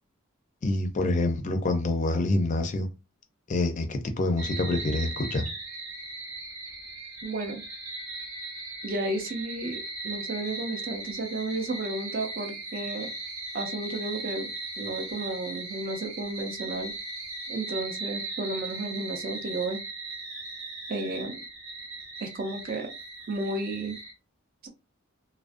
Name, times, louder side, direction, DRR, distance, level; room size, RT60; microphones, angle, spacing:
voice 1, 0.6-2.9 3.5-5.5, left 2 dB, 35° left, 0.4 m, -26 dB
sound 1, 4.4-24.1, right 2 dB, 75° right, 0.8 m, -38 dB
voice 2, 7.2-7.6 8.8-13.1 13.5-14.5 14.8-16.9 17.5-19.8 20.9-21.4 22.2-22.9 23.3-24.0 24.6-24.7, right 2 dB, 45° right, 0.5 m, -33 dB
2.4 x 2.0 x 2.5 m
head